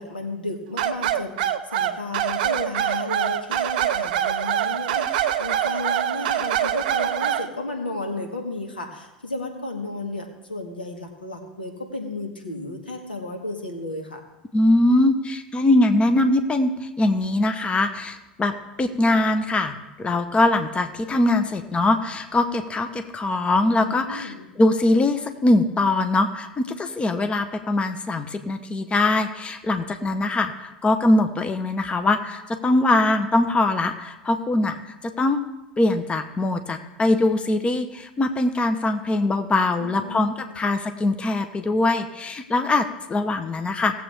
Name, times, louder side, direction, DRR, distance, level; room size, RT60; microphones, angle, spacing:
voice 1, 0.0-14.2 23.9-24.5 39.8-40.6, left 2 dB, 90° left, 2 dB, 1.9 m, -33 dB
sound 1, 0.8-7.5, right 10 dB, 65° right, 0.7 m, -24 dB
voice 2, 14.5-35.4 35.8-44.0, left 2 dB, 20° left, 8 dB, 1.1 m, -22 dB
18.5 x 7.7 x 3.6 m, 0.98 s
figure-of-eight pair, 80°, 5 cm